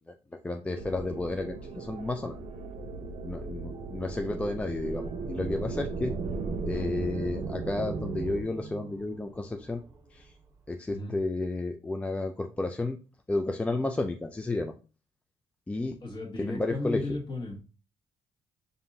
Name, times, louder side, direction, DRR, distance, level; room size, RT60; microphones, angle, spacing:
voice 1, 0.4-2.4 3.2-6.1 6.7-9.8 10.1-10.3 10.7-13.0 13.3-14.7 15.7-16.0 16.4-17.1, left 2 dB, 10° left, 4 dB, 0.3 m, -32 dB
sound 1, 0.7-8.4, right 4 dB, 70° right, 0.6 m, -36 dB
sound 2, 4.7-10.7, equal, 30° right, 0.8 m, -47 dB
voice 2, 16.0-17.6, left 2 dB, 40° left, 0 dB, 1.4 m, -35 dB
5.3 x 2.6 x 2.7 m, 0.35 s
cardioid pair, 110°, 11 cm